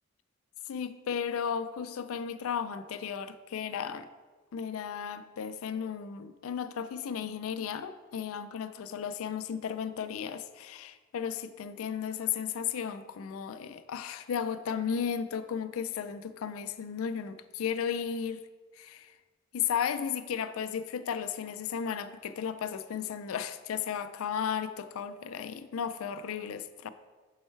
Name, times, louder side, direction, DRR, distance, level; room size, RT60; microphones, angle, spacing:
voice 1, 0.7-4.1 4.5-18.4 18.8-19.1 19.5-26.9, left 7 dB, 75° left, 12 dB, 0.4 m, -34 dB
5.4 x 4.4 x 4.4 m, 1.3 s
head